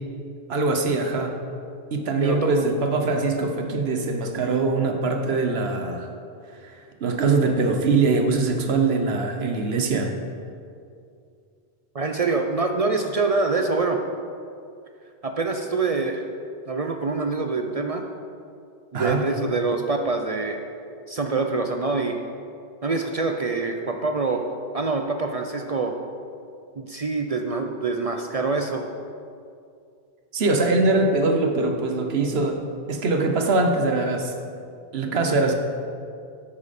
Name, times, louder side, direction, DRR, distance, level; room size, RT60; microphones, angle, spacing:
voice 1, 0.5-1.3 1.9-6.1 6.6-10.1 18.9-19.2 30.3-32.6 32.9-34.3 34.9-35.5, right 3 dB, 80° right, 5 dB, 1.2 m, -22 dB
voice 2, 2.2-2.6 11.9-14.0 15.2-16.2 16.7-18.0 18.9-20.6 21.1-22.2 22.8-24.5 24.7-26.0 26.8-28.8, right 3 dB, 45° right, 4 dB, 0.5 m, -25 dB
10.5 x 8.4 x 4.2 m, 2.4 s
omnidirectional pair, 1.0 m